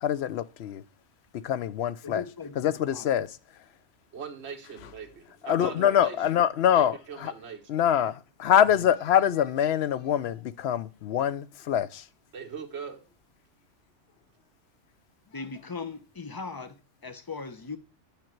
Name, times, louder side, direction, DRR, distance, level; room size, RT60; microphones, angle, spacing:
voice 1, 0.0-0.8 1.4-2.2 2.6-3.3 5.4-7.3 7.7-12.0, left 9 dB, 70° left, 0.8 m, -24 dB
voice 2, 2.0-3.1 15.3-17.8, left 4 dB, 25° left, 0.5 m, -39 dB
voice 3, 4.1-6.2 6.7-7.6 12.3-13.0, right 6 dB, 65° right, 1.4 m, -40 dB
9.0 x 5.2 x 4.5 m
omnidirectional pair, 1.2 m